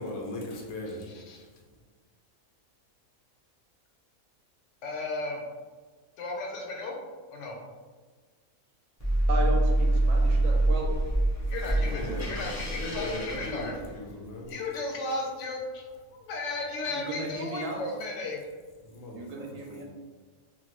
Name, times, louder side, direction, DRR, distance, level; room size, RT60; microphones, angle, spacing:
voice 1, 0.0-1.5 11.8-14.6 18.8-19.8, left 1 dB, 85° left, 0 dB, 1.1 m, -38 dB
voice 2, 4.8-5.4 6.2-6.9 7.3-7.6 11.5-13.7 14.5-18.5, left 2 dB, 65° left, 0 dB, 0.9 m, -35 dB
sound 1, 9.0-14.3, right 1 dB, 25° left, 0.3 m, -26 dB
voice 3, 9.3-10.9 16.9-17.8 19.1-19.8, right 2 dB, 70° right, 0 dB, 0.9 m, -35 dB
3.1 x 2.1 x 2.9 m, 1.4 s
omnidirectional pair, 1.5 m